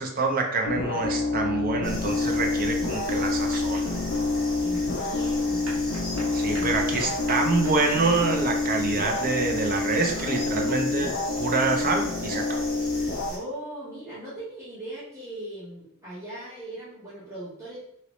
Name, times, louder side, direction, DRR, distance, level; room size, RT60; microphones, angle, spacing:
voice 1, 0.0-4.0 6.3-12.7, right 3 dB, 45° right, 3 dB, 0.6 m, -26 dB
sound 1, 0.7-13.3, left 3 dB, 55° left, 0.4 m, -27 dB
sound 2, 1.8-13.4, left 1 dB, 5° left, 1.2 m, -38 dB
sound 3, 3.5-10.4, right 2 dB, 80° right, 1.0 m, -44 dB
voice 2, 4.6-6.7 10.0-10.3 13.3-17.8, right 1 dB, 15° right, -11 dB, 1.0 m, -39 dB
3.0 x 2.9 x 3.0 m, 0.71 s
head